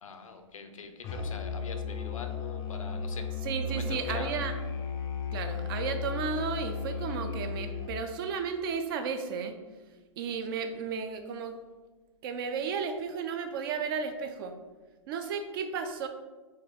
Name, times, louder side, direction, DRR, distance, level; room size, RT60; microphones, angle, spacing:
voice 1, 0.0-3.2 3.7-4.3, left 4 dB, 80° left, 7 dB, 0.5 m, -43 dB
Musical instrument, 1.0-8.1, left 5 dB, 25° left, 0.4 m, -35 dB
voice 2, 3.4-4.6 5.3-9.6 10.2-11.6 12.2-14.6 15.1-16.1, right 6 dB, 45° right, 7 dB, 0.4 m, -33 dB
4.2 x 2.4 x 3.4 m, 1.3 s
hypercardioid pair, 120°, 17 cm